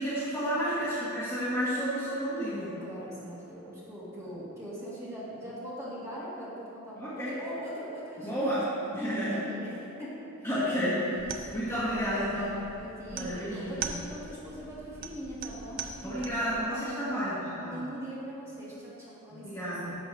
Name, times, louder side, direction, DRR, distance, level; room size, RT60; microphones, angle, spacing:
voice 1, 0.0-2.7 6.9-7.3 8.2-8.6 8.9-9.4 10.4-11.2 11.5-12.5 13.1-13.8 16.0-17.8 19.3-19.9, equal, 10° left, -11 dB, 1.5 m, -31 dB
voice 2, 2.8-8.6 8.9-10.5 11.2-11.5 11.9-12.1 12.4-16.3 16.7-17.0 17.5-20.0, equal, 10° right, -9 dB, 1.9 m, -41 dB
sound 1, 11.2-16.6, right 5 dB, 40° right, 0.5 m, -42 dB
11.0 x 6.8 x 3.4 m, 2.8 s
head